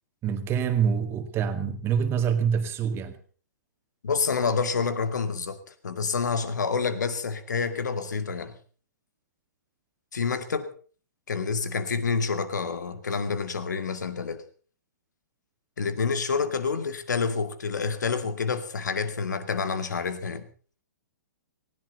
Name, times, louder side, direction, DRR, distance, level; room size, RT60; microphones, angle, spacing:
voice 1, 0.2-3.1, right 7 dB, 25° right, 2.0 m, -26 dB
voice 2, 4.0-8.6 10.1-10.7 11.3-14.4 15.8-20.5, left 5 dB, 75° left, 2.1 m, -28 dB
18.5 x 17.0 x 4.1 m
figure-of-eight pair, 120°, 10 cm